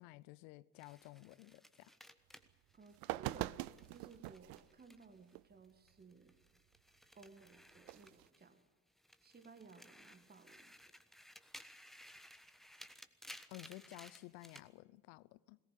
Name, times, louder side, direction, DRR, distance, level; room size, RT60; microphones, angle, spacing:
voice 1, 0.0-1.9 13.5-15.6, left 20 dB, 55° left, 0.7 m, -54 dB
sound 1, 0.8-5.3 5.6-8.6 9.0-14.7, equal, ahead, 1.2 m, -58 dB
sound 2, 2.5-2.6 2.9-4.6 5.3-5.4 7.8-8.3, right 19 dB, 50° right, 0.6 m, -43 dB
voice 2, 2.7-6.4 7.1-8.6 9.2-10.9, right 4 dB, 20° right, 1.7 m, -59 dB
22.0 x 18.5 x 8.4 m
figure-of-eight pair, 50°, 44 cm